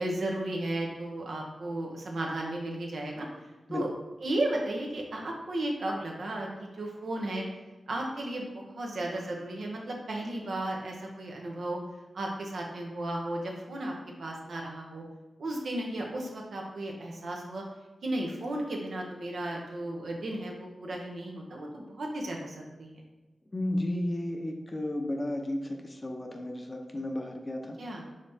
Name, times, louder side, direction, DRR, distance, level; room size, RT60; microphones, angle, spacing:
voice 1, 0.0-3.3 3.7-3.9 4.2-7.4 7.9-11.8 12.1-13.9 14.2-15.0 15.4-17.6 18.0-22.9 27.8-28.0, right 1 dB, 75° right, 0 dB, 0.8 m, -34 dB
voice 2, 23.5-27.8, left 1 dB, 30° left, 2 dB, 0.6 m, -33 dB
5.1 x 3.4 x 2.7 m, 1.1 s
cardioid pair, 50°, 0 cm